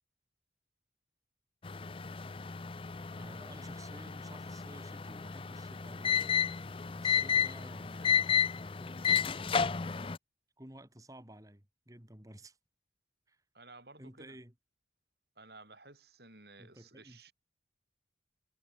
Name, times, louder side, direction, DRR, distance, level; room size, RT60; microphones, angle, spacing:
sound 1, 1.6-10.2, left 7 dB, 30° left, 0.5 m, -32 dB
voice 1, 3.1-6.4 6.9-9.9 10.6-12.6 13.3-13.4 14.0-14.5 16.6-17.3, right 1 dB, 20° right, 2.9 m, -53 dB
voice 2, 13.5-14.4 15.4-17.3, right 3 dB, 60° right, 7.8 m, -55 dB
head